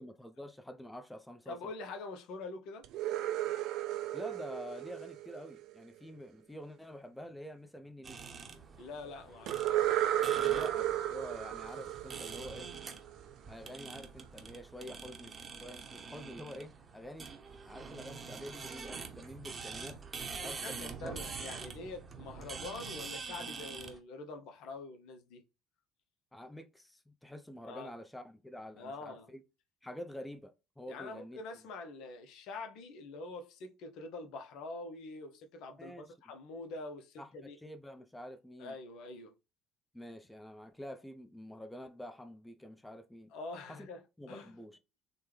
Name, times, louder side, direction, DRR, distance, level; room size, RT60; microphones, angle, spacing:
voice 1, 0.0-1.7 4.1-8.3 10.5-12.7 13.5-17.3 17.7-20.0 20.4-21.1 21.6-21.9 26.3-29.4 29.8-31.4 35.8-36.1 37.2-38.8 39.9-43.3 43.7-43.9 44.2-44.8, equal, 5° left, 0.5 m, -47 dB
voice 2, 1.5-2.8 8.8-9.9 10.3-10.7 20.4-25.4 27.7-27.9 28.8-29.3 30.9-37.6 38.6-39.3 43.3-44.0 44.3-44.5, left 3 dB, 60° left, 0.5 m, -45 dB
sound 1, 2.8-5.8 9.5-13.2, right 13 dB, 55° right, 0.3 m, -34 dB
sound 2, 8.0-24.0, right 5 dB, 25° right, 0.8 m, -46 dB
3.3 x 2.1 x 3.1 m
figure-of-eight pair, 60°, 0 cm